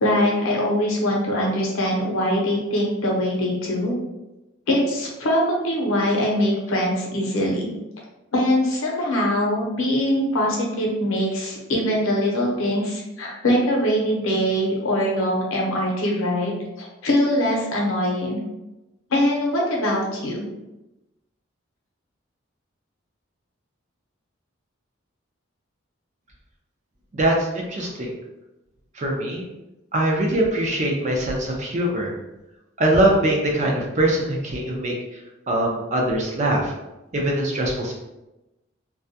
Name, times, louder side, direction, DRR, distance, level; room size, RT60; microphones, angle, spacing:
voice 1, 0.0-3.9 4.7-7.7 8.3-18.4 19.1-20.5, equal, 90° left, -2 dB, 0.7 m, -22 dB
voice 2, 27.1-28.1 28.9-29.5 29.9-32.1 32.8-34.9 35.5-36.7 37.1-37.9, right 1 dB, 35° right, -1 dB, 0.4 m, -22 dB
2.3 x 2.1 x 2.7 m, 1.0 s
head